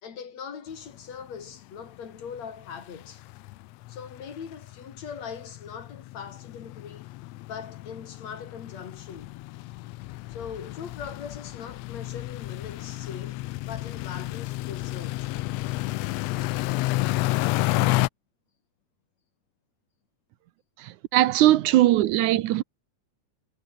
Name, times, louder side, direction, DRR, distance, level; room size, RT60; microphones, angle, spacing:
voice 1, 0.0-3.2 3.9-7.1 7.5-9.3 10.3-15.3 21.7-21.8, left 7 dB, 65° left, 3.8 m, -41 dB
sound 1, 1.0-1.1 1.3-1.5 1.9-2.0 2.2-18.1, left 19 dB, 80° left, 1.5 m, -31 dB
voice 2, 20.8-22.6, right 15 dB, 80° right, 2.3 m, -20 dB
omnidirectional pair, 3.5 m